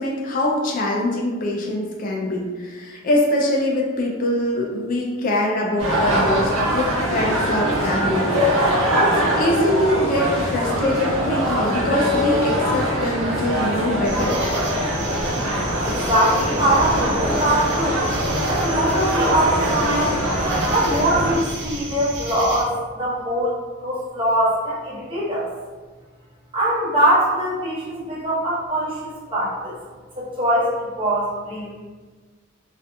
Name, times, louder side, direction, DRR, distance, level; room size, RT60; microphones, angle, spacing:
voice 1, 0.0-8.3 8.6-8.8 9.4-14.4, left 1 dB, 40° left, -2 dB, 0.3 m, -23 dB
sound 1, 5.8-21.4, equal, 80° right, 0.9 m, -22 dB
sound 2, 14.0-22.6, right 2 dB, 60° right, 0.6 m, -32 dB
voice 2, 15.8-18.0 18.5-20.2 20.7-25.4 26.5-29.7 30.2-31.7, right 1 dB, 25° right, -8 dB, 0.8 m, -22 dB
2.7 x 2.4 x 2.2 m, 1.4 s
head